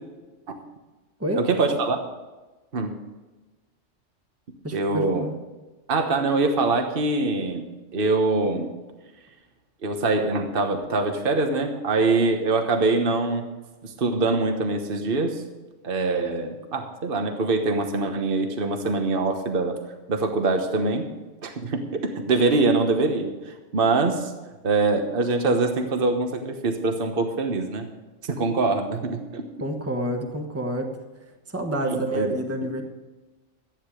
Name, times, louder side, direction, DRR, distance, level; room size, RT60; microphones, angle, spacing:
voice 1, 1.3-2.0 2.7-2.9 4.7-5.3 5.9-8.7 9.8-13.4 13.8-15.4 15.8-19.8 20.1-21.1 21.4-24.3 24.6-27.9 28.2-29.4 31.8-32.3, right 3 dB, 50° right, 5 dB, 1.4 m, -24 dB
voice 2, 4.6-5.4 29.6-31.0 31.5-32.8, right 1 dB, 10° right, 3 dB, 1.3 m, -28 dB
13.5 x 11.0 x 5.0 m, 1.2 s
omnidirectional pair, 1.3 m